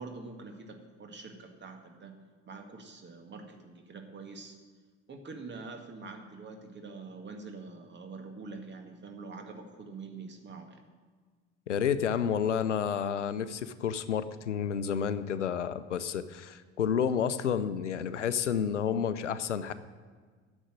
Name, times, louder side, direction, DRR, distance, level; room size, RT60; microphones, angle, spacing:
voice 1, 0.0-2.1 2.5-4.6 5.1-10.8, right 4 dB, 30° right, 4 dB, 1.9 m, -45 dB
voice 2, 11.7-19.7, left 8 dB, 90° left, 13 dB, 0.6 m, -30 dB
9.9 x 7.2 x 9.1 m, 1.6 s
figure-of-eight pair, 65°, 35 cm